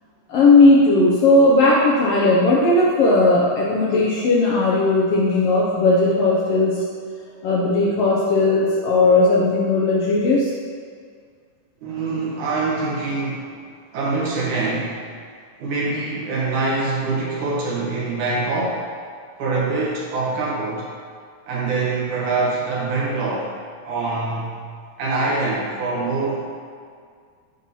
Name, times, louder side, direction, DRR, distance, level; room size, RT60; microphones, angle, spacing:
voice 1, 0.3-6.8 7.4-10.5, left 2 dB, 75° left, -5 dB, 1.4 m, -16 dB
voice 2, 11.8-13.6 13.9-15.1 15.6-18.9 19.4-20.9 21.5-23.5 23.9-24.6 25.0-26.4, right 3 dB, 90° right, -5 dB, 2.8 m, -24 dB
7.4 x 2.9 x 5.4 m, 2.1 s
omnidirectional pair, 3.4 m